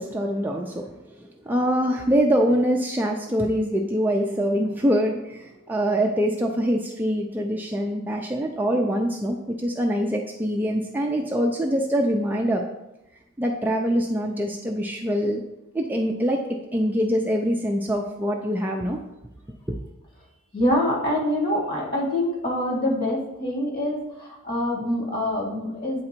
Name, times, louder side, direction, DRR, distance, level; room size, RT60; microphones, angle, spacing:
voice 1, 0.0-12.6 13.4-15.4 15.7-19.0 19.7-19.8, equal, 10° right, 0 dB, 0.4 m, -24 dB
voice 2, 20.5-26.0, left 1 dB, 45° left, -3 dB, 2.0 m, -25 dB
8.6 x 3.8 x 4.4 m, 0.92 s
head